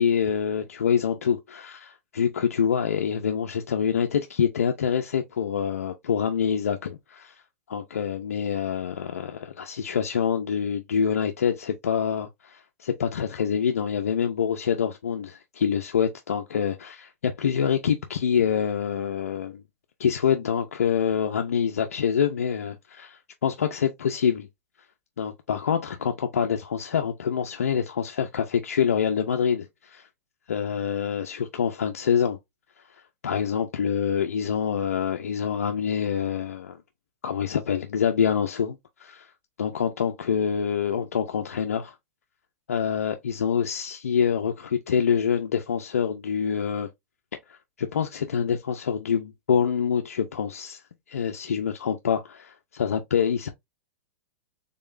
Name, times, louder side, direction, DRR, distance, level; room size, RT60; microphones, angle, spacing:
voice 1, 0.0-7.3 7.7-19.6 20.0-24.5 25.2-30.1 30.5-32.4 33.2-36.8 37.2-39.3 39.6-41.9 42.7-46.9 47.5-50.8 51.1-53.5, left 7 dB, 90° left, 0.5 m, -26 dB
3.7 x 3.6 x 2.5 m
hypercardioid pair, 120°, 8 cm